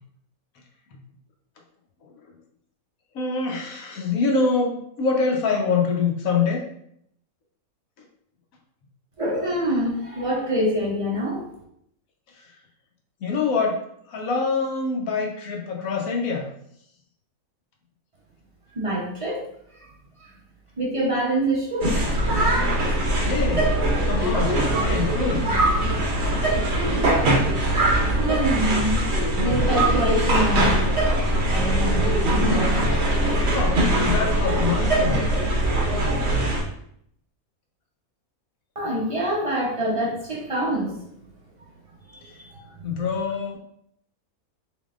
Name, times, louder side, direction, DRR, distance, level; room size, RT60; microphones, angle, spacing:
voice 1, 3.1-6.6 13.2-13.8 14.1-16.5 23.2-23.7 24.1-25.5 33.5-35.3 42.8-43.6, left 4 dB, 70° left, 1 dB, 1.2 m, -25 dB
voice 2, 9.2-11.5 18.8-19.4 20.8-22.0 28.2-28.9 29.4-30.9 31.5-32.1 38.8-40.9 42.2-42.3 42.8-42.9, equal, 30° right, -3 dB, 0.6 m, -25 dB
sound 1, 21.8-36.6, right 1 dB, 50° right, 1.0 m, -21 dB
3.9 x 3.6 x 2.4 m, 0.70 s
omnidirectional pair, 1.6 m